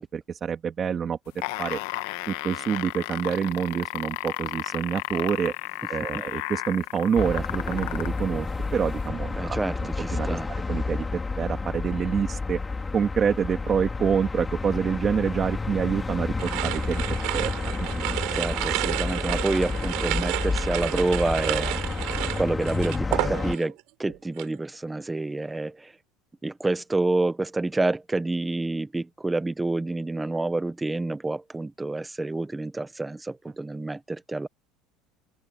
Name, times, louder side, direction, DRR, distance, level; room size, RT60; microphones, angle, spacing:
voice 1, 0.0-1.8 2.3-5.5 5.9-8.5 8.7-12.6 12.9-17.0 17.3-17.5 17.8-17.9, right 7 dB, 25° right, 2.5 m, -27 dB
sound 1, 1.3-8.2 9.0-9.1, left 19 dB, 85° left, 1.4 m, -33 dB
sound 2, 7.1-23.5, left 3 dB, 10° left, 4.5 m, -30 dB
voice 2, 9.4-10.5 18.3-21.8 22.2-23.7 24.0-25.9 26.4-34.5, right 2 dB, 10° right, 1.0 m, -28 dB
sound 3, 16.4-23.8 24.1-24.6, right 24 dB, 60° right, 6.3 m, -31 dB
open air
cardioid pair, 160°, 0 cm